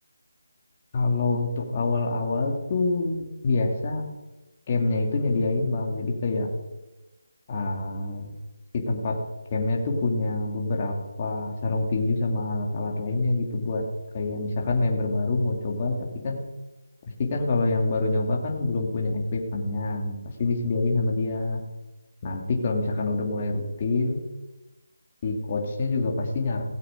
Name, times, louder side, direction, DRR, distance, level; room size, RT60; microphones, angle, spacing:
voice 1, 0.9-4.0 4.7-6.5 7.5-8.3 8.7-9.2 9.5-13.8 14.1-16.0 16.2-16.4 17.3-21.6 22.2-24.2 25.2-26.6, left 3 dB, 30° left, 1 dB, 2.2 m, -26 dB
17.5 x 7.9 x 5.1 m, 1.1 s
figure-of-eight pair, 165°, 0 cm